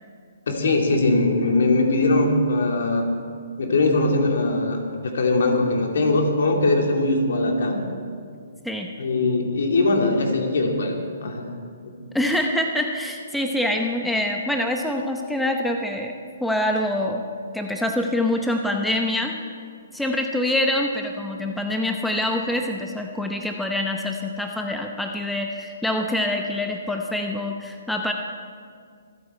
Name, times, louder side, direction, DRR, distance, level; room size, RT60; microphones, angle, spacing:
voice 1, 0.5-3.1 3.6-7.8 9.0-11.0 11.2-11.5 11.8-11.9, left 2 dB, 70° left, 2 dB, 2.6 m, -21 dB
voice 2, 12.1-16.1 16.4-17.2 17.5-19.3 19.9-28.1, left 1 dB, ahead, 2 dB, 0.8 m, -25 dB
26.0 x 8.8 x 4.4 m, 2.1 s
hypercardioid pair, 145°, 0 cm